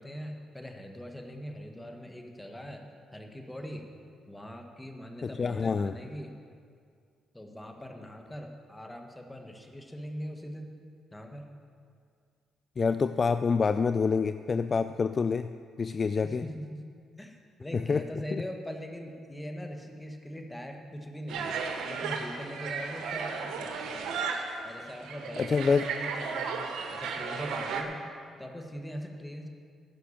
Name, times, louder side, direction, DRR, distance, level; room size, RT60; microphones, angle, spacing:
voice 1, 0.0-2.8 3.1-3.8 4.3-6.3 7.3-10.8 11.1-11.5 16.2-16.8 17.2-21.6 21.8-24.1 24.6-26.6 26.9-28.0 28.4-29.5, equal, 10° left, 3 dB, 1.4 m, -41 dB
voice 2, 5.2-5.9 12.8-15.5 15.8-16.4 17.7-18.0 18.3-18.4 25.4-25.9, left 5 dB, 40° left, 11 dB, 0.3 m, -27 dB
sound 1, 21.3-27.8, right 5 dB, 85° right, 1.2 m, -34 dB
15.0 x 5.8 x 7.2 m, 2.2 s
cardioid pair, 90°, 0 cm